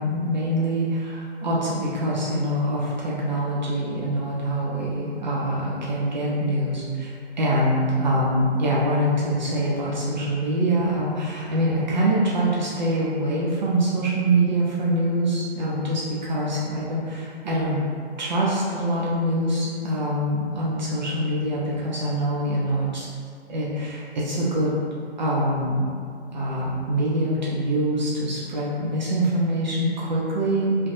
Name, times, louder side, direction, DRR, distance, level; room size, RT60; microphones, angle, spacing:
voice 1, 0.0-17.8 18.2-23.1 23.5-24.7 25.2-25.8 26.3-30.9, right 1 dB, 45° right, -6 dB, 0.5 m, -24 dB
2.5 x 2.2 x 2.7 m, 2.2 s
figure-of-eight pair, 130°, 33 cm